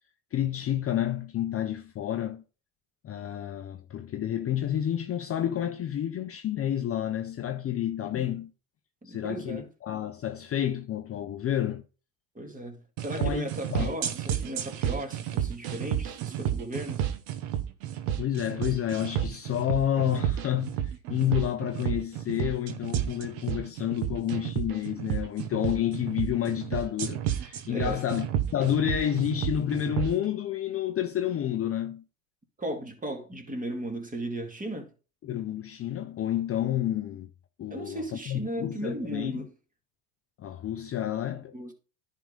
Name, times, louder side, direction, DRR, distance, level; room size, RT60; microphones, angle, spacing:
voice 1, 0.3-2.4 3.0-8.5 9.1-11.8 13.2-13.9 18.2-28.3 28.5-32.0 35.2-37.3 37.6-39.3 40.4-41.7, left 11 dB, 30° left, 0.6 m, -30 dB
voice 2, 9.0-9.7 12.3-17.1 27.7-28.0 32.6-34.9 37.7-39.5 41.5-41.7, right 1 dB, 15° right, 2.1 m, -36 dB
sound 1, 13.0-30.1, right 10 dB, 75° right, 1.2 m, -31 dB
10.0 x 3.8 x 5.2 m
supercardioid pair, 95°, 46 cm